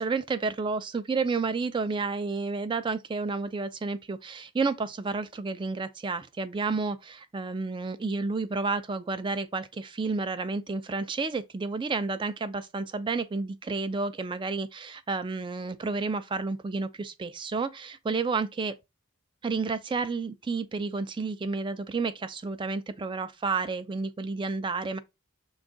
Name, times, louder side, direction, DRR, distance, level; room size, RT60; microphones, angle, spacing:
voice 1, 0.0-18.8 19.4-25.0, right 4 dB, 20° right, 0.3 m, -31 dB
6.1 x 2.3 x 3.7 m
head